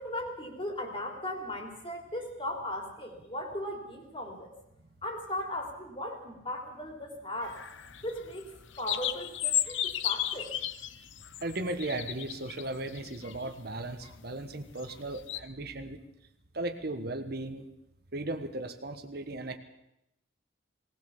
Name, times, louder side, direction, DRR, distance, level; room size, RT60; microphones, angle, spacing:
voice 1, 0.0-4.5 5.0-7.6 8.0-8.5 8.8-10.5, left 1 dB, 25° left, 3 dB, 3.5 m, -37 dB
sound 1, 7.4-15.4, left 11 dB, 75° left, 0.9 m, -35 dB
voice 2, 11.4-16.0 16.5-17.7 18.1-19.6, right 2 dB, 55° right, 8 dB, 1.4 m, -36 dB
19.5 x 18.5 x 7.2 m, 0.85 s
head